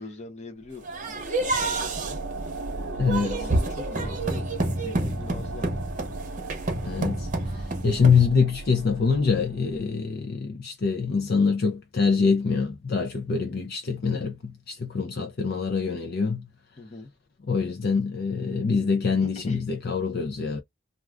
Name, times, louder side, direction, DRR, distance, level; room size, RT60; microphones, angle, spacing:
voice 1, 0.0-2.2 2.9-5.8 16.8-17.1 19.2-19.6, left 2 dB, 35° left, 0.8 m, -42 dB
sound 1, 0.6-9.9, right 2 dB, 90° right, 0.7 m, -37 dB
sound 2, 0.8-8.3, right 2 dB, 40° right, 0.8 m, -29 dB
voice 2, 3.0-3.3 6.8-16.5 17.5-20.6, left 5 dB, 50° left, 0.5 m, -25 dB
2.4 x 2.3 x 3.3 m
head